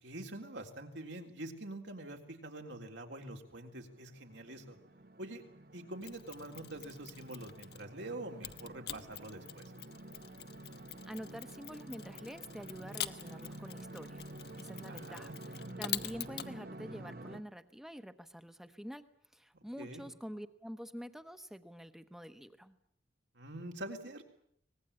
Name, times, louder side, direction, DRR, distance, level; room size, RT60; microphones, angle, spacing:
voice 1, 0.0-4.8 5.2-5.4 5.7-9.6 14.8-15.3 19.8-20.0 23.3-24.2, right 1 dB, 75° right, 3 dB, 3.7 m, -45 dB
sound 1, 3.5-17.4, right 1 dB, 50° right, 1.2 m, -50 dB
Mechanisms, 6.0-7.9 8.4-16.5, left 12 dB, 55° left, 1.1 m, -45 dB
voice 2, 11.1-14.3 14.6-19.0 19.3-22.8, equal, ahead, 11 dB, 1.0 m, -47 dB
24.5 x 20.0 x 8.8 m, 0.65 s
head